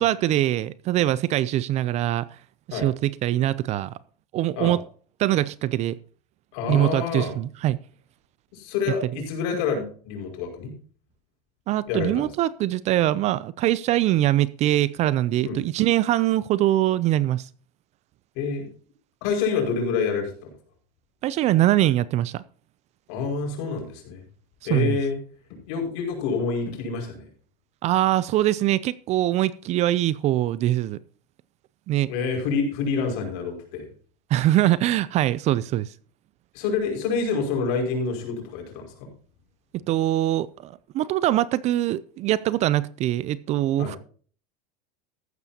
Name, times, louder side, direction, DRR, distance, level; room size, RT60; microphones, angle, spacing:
voice 1, 0.0-2.3 2.7-3.9 4.3-4.8 5.2-6.0 6.7-7.8 11.7-17.5 21.2-22.4 24.7-25.0 27.8-31.0 31.9-32.1 34.3-35.9 39.9-44.0, right 14 dB, 35° right, 0.4 m, -23 dB
voice 2, 6.5-7.3 8.5-10.7 11.9-12.3 15.4-15.6 18.4-18.7 19.2-20.5 23.1-24.2 24.6-25.2 25.5-27.3 32.0-33.9 36.5-39.1 43.8-43.9, left 5 dB, 60° left, 5.5 m, -27 dB
14.5 x 12.0 x 2.8 m
supercardioid pair, 140°, 20 cm